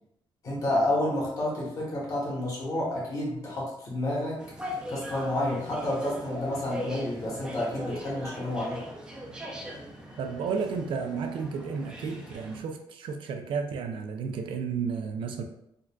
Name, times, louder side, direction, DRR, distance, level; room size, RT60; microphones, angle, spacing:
voice 1, 0.4-4.4 4.9-8.8, left 1 dB, 40° left, -4 dB, 1.0 m, -30 dB
sound 1, 4.4-12.6, equal, 10° right, 0.4 m, -40 dB
voice 2, 10.2-15.4, right 5 dB, 70° right, 5 dB, 0.4 m, -32 dB
3.8 x 2.3 x 2.2 m, 0.77 s
wide cardioid pair, 165°, 9 cm